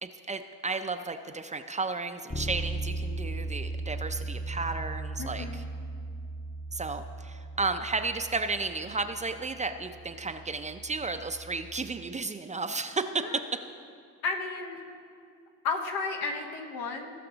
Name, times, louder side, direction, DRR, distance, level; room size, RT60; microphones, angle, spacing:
voice 1, 0.0-5.6 6.7-13.2, right 3 dB, 20° right, 8 dB, 0.4 m, -33 dB
Bass guitar, 2.3-12.1, right 2 dB, 15° left, 0.8 m, -38 dB
voice 2, 5.2-5.6 13.2-13.4 14.2-14.8 15.6-17.1, left 4 dB, 80° left, 2 dB, 1.4 m, -33 dB
17.5 x 5.9 x 3.9 m, 2.3 s
supercardioid pair, 85°, 37 cm